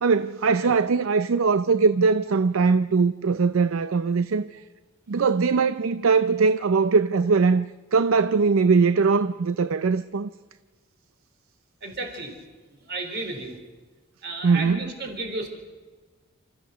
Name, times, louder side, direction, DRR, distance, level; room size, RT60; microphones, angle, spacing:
voice 1, 0.0-4.6 5.1-7.7 7.9-10.3 14.4-14.9, right 4 dB, 70° right, 0.5 m, -21 dB
voice 2, 11.8-12.3 12.7-13.6 14.2-15.5, right 2 dB, 55° right, 3.8 m, -33 dB
29.0 x 13.5 x 6.7 m
head